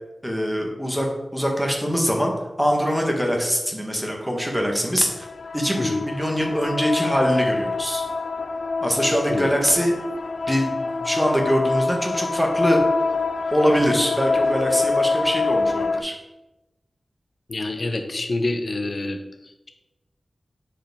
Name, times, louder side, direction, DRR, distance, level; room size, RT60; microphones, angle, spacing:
voice 1, 0.2-1.1 1.3-5.2 5.5-8.1 8.8-9.9 10.5-12.8 13.5-16.2, equal, ahead, 0 dB, 1.3 m, -23 dB
sound 1, 5.1-16.0, left 3 dB, 90° left, 0.3 m, -25 dB
voice 2, 9.3-9.6 17.5-19.7, left 2 dB, 50° left, 5 dB, 0.7 m, -27 dB
7.2 x 4.9 x 3.5 m, 1.0 s
wide cardioid pair, 90°, 0 cm